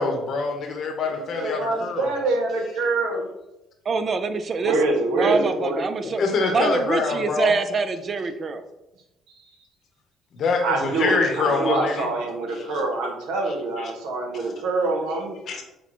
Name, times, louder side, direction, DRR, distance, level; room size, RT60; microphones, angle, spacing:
voice 1, 0.0-2.1 6.2-7.5 10.3-12.1 12.5-12.8 13.8-13.9 15.5-15.6, left 4 dB, 55° left, 4 dB, 0.9 m, -25 dB
voice 2, 1.0-3.3 4.6-5.8 10.6-15.4, right 2 dB, 85° right, 2 dB, 0.9 m, -25 dB
voice 3, 3.9-4.8 5.1-6.2 6.5-8.6, right 4 dB, 40° right, 9 dB, 0.4 m, -25 dB
6.1 x 2.2 x 3.0 m, 0.96 s
supercardioid pair, 80°, 0 cm